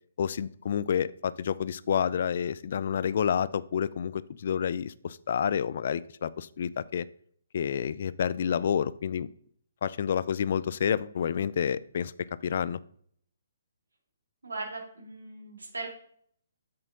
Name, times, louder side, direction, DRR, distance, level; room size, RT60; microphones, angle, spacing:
voice 1, 0.2-7.0 7.5-9.3 9.8-12.1 12.4-12.8, left 8 dB, 55° left, 19 dB, 0.4 m, -29 dB
voice 2, 14.4-15.9, right 3 dB, 85° right, 1 dB, 2.8 m, -38 dB
7.8 x 7.5 x 3.9 m, 0.62 s
hypercardioid pair, 140°, 0 cm